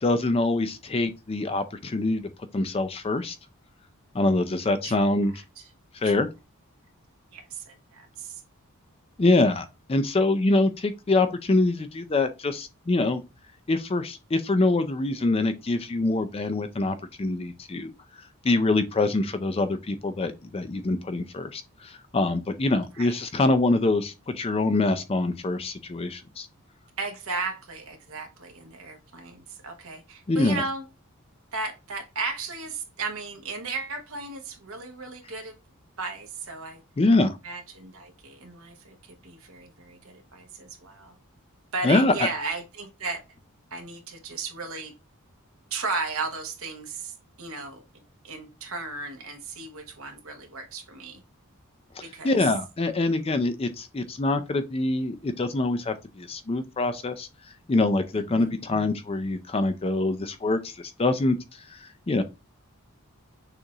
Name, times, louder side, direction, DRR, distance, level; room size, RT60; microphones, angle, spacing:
voice 1, 0.0-2.2 2.5-3.4 4.1-5.3 6.0-6.3 9.2-13.2 13.7-17.9 18.4-26.5 30.3-30.6 37.0-37.4 41.8-42.3 52.0-57.3 57.7-61.4 61.7-62.2, left 2 dB, 25° left, 0.4 m, -25 dB
voice 2, 7.3-8.4 23.0-23.1 27.0-30.8 31.5-35.5 36.0-36.8 37.4-41.2 41.7-43.2 43.7-44.9 45.7-47.8 48.2-51.2 52.0-52.3 58.1-58.6, right 3 dB, 65° right, 1.0 m, -35 dB
6.4 x 2.5 x 2.9 m
head